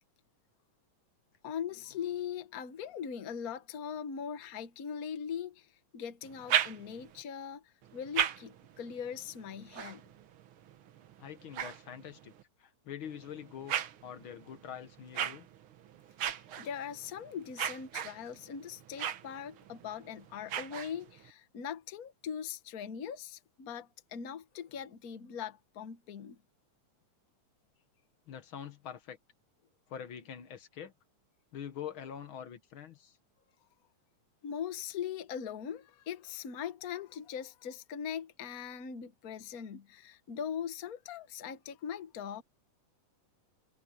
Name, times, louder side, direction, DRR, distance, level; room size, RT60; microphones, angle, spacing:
voice 1, 1.4-10.0 16.6-26.4 34.4-42.4, left 8 dB, 75° left, 0.8 m, -41 dB
sound 1, 6.2-7.2 7.8-12.4 13.0-21.3, right 9 dB, 60° right, 1.4 m, -38 dB
voice 2, 11.2-12.3 12.6-13.8 14.0-15.5 28.3-29.2 29.9-30.9 31.5-33.2, left 9 dB, 55° left, 1.5 m, -44 dB
omnidirectional pair, 3.5 m